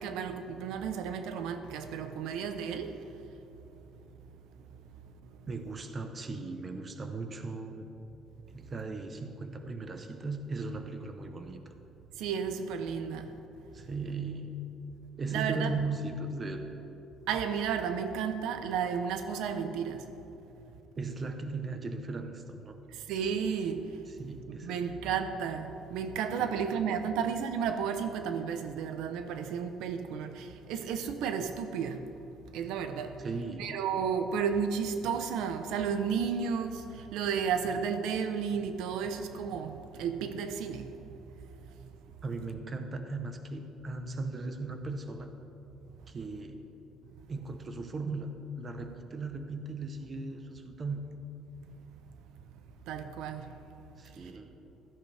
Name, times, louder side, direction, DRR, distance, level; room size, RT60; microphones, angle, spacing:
voice 1, 0.0-3.0 12.2-13.3 15.3-15.7 17.3-20.0 23.1-23.8 24.5-32.0 32.5-33.2 33.6-36.8 37.1-40.9 52.9-53.5, right 7 dB, 85° right, 0.8 m, -32 dB
voice 2, 5.5-7.9 8.5-11.6 13.7-14.5 15.2-16.6 21.0-22.8 24.2-25.0 26.4-26.8 33.2-33.7 42.2-45.3 46.1-46.6 47.3-48.3 48.6-51.1 54.0-54.5, right 3 dB, 25° right, 0.9 m, -37 dB
15.5 x 13.5 x 3.4 m
cardioid pair, 160°, 0 cm